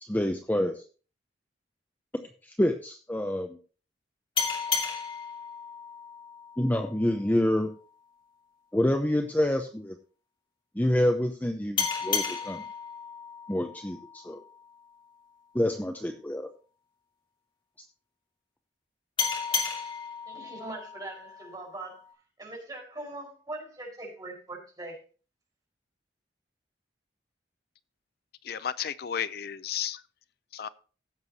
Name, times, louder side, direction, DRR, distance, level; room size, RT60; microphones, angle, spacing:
voice 1, 0.0-0.8 2.6-3.6 6.6-7.7 8.7-9.9 10.8-12.6 13.5-14.4 15.5-16.5, left 1 dB, 10° left, 0.7 m, -27 dB
sound 1, 4.4-7.6 11.8-15.0 19.2-22.1, left 6 dB, 30° left, 3.0 m, -34 dB
voice 2, 20.3-22.0 22.4-25.0, right 2 dB, 20° right, 4.8 m, -41 dB
voice 3, 28.4-30.0 30.5-30.7, left 9 dB, 55° left, 0.4 m, -33 dB
16.0 x 7.8 x 2.8 m
head